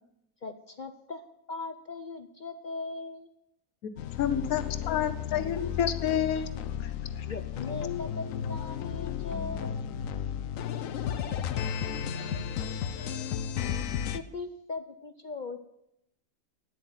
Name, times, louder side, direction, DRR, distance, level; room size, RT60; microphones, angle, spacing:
voice 1, 0.4-3.3 7.3-9.7 14.1-15.7, left 3 dB, 50° left, 8 dB, 0.6 m, -39 dB
voice 2, 3.8-6.5 6.8-6.9 7.2-7.3, left 9 dB, 85° left, 12 dB, 1.3 m, -29 dB
sound 1, 4.0-14.2, left 8 dB, 70° left, 1.0 m, -33 dB
voice 3, 10.7-13.4, equal, 30° right, -10 dB, 5.3 m, -50 dB
9.6 x 7.8 x 9.0 m, 0.82 s
omnidirectional pair, 1.5 m